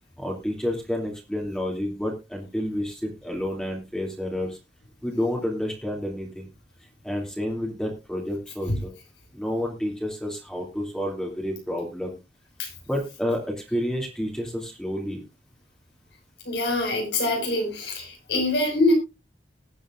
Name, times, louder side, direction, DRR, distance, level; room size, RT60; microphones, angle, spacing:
voice 1, 0.2-4.6 5.0-6.5 7.0-8.9 9.3-12.2 12.9-15.2, left 1 dB, 5° left, 0 dB, 2.8 m, -30 dB
voice 2, 16.5-18.9, left 2 dB, 70° left, 2 dB, 5.7 m, -24 dB
19.5 x 8.9 x 2.5 m, 0.25 s
head